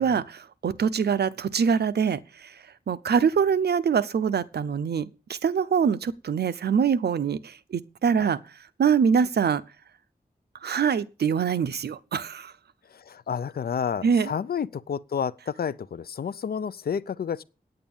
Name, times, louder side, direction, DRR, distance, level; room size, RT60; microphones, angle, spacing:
voice 1, 0.0-2.5 2.9-8.4 8.8-9.6 10.6-12.5 14.0-14.3, right 6 dB, 75° right, 0.7 m, -24 dB
voice 2, 12.9-17.4, left 7 dB, 65° left, 0.6 m, -30 dB
9.4 x 8.9 x 7.2 m
wide cardioid pair, 105°, 17 cm